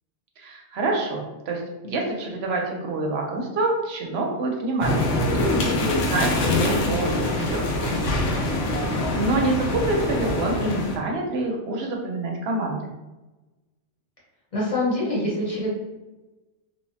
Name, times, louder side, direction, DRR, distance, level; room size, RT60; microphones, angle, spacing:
voice 1, 0.4-8.2 8.8-12.9, right 2 dB, 65° right, 0 dB, 0.8 m, -27 dB
sound 1, 4.8-11.0, left 2 dB, 80° left, 0.9 m, -24 dB
voice 2, 14.5-15.7, left 1 dB, 30° left, -6 dB, 0.9 m, -25 dB
3.2 x 2.0 x 2.6 m, 1.1 s
omnidirectional pair, 1.3 m